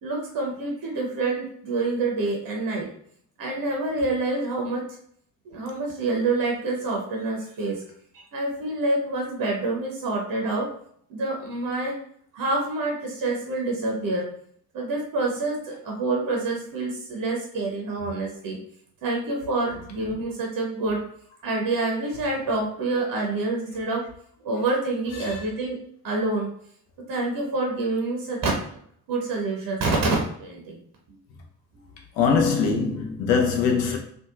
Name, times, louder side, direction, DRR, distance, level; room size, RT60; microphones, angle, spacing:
voice 1, 0.0-2.9 3.4-4.9 5.4-7.8 8.1-10.7 11.1-11.9 12.3-14.3 14.7-18.6 19.0-21.0 21.4-24.1 24.4-25.8 26.0-26.5 27.1-28.5 29.1-30.8, right 2 dB, 45° right, 0.8 m, -27 dB
voice 2, 32.2-34.0, left 5 dB, 60° left, 0.7 m, -22 dB
2.7 x 2.2 x 2.3 m
figure-of-eight pair, 45°, 48 cm